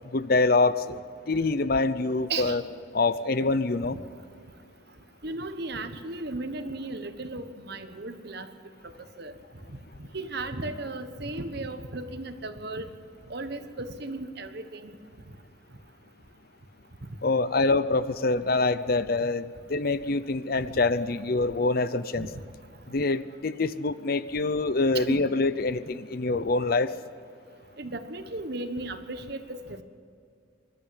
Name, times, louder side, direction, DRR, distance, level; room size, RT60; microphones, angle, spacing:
voice 1, 0.1-1.0 1.3-2.6 2.9-4.0 17.2-22.3 22.9-26.9, left 3 dB, 50° left, 14 dB, 0.7 m, -25 dB
voice 2, 5.2-8.5 8.8-8.9 9.2-9.3 9.7-9.8 10.1-12.9 13.3-14.9 22.1-22.3 24.9-25.3 27.8-29.8, right 2 dB, 55° right, 9 dB, 1.3 m, -35 dB
24.5 x 12.5 x 9.7 m, 2.3 s
head